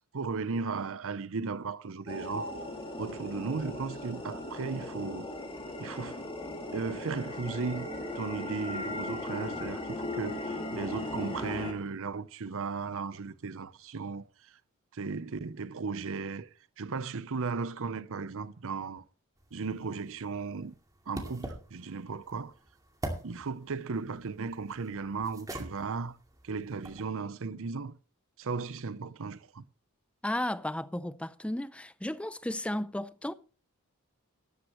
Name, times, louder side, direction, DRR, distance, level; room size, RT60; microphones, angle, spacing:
voice 1, 0.1-2.5 3.0-5.3 5.8-6.2 6.7-7.9 8.1-14.2 14.9-16.5 16.8-19.0 19.5-20.7 21.1-22.5 23.2-26.2 26.4-28.0 28.4-29.6, right 4 dB, 65° right, 0.7 m, -36 dB
sound 1, 2.1-11.7, left 1 dB, 25° left, 2.4 m, -38 dB
sound 2, 19.4-27.1, right 1 dB, 15° right, 2.3 m, -45 dB
voice 2, 30.2-33.3, left 1 dB, 5° left, 0.5 m, -34 dB
13.0 x 12.5 x 3.1 m
head